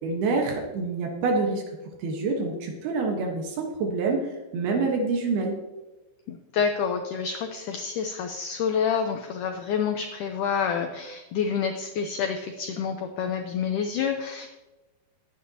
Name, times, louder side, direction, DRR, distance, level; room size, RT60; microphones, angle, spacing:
voice 1, 0.0-1.6 2.0-4.2 4.5-5.6, right 3 dB, 75° right, 1 dB, 3.2 m, -26 dB
voice 2, 6.3-14.5, left 6 dB, 80° left, 5 dB, 1.8 m, -28 dB
21.0 x 8.7 x 2.9 m, 1.1 s
omnidirectional pair, 4.6 m